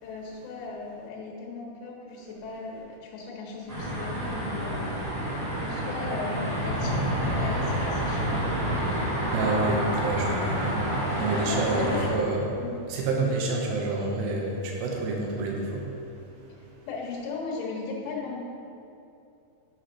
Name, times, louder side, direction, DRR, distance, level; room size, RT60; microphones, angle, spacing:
voice 1, 0.0-4.9 5.4-9.4 11.3-12.1 12.6-12.7 16.9-18.4, left 3 dB, 80° left, -3 dB, 3.4 m, -37 dB
sound 1, 3.7-12.1, right 1 dB, 55° right, 1.0 m, -28 dB
voice 2, 9.3-10.9 11.2-12.6 12.9-16.5, right 2 dB, 75° right, -1 dB, 2.9 m, -28 dB
8.9 x 4.8 x 5.7 m, 2.7 s
omnidirectional pair, 5.6 m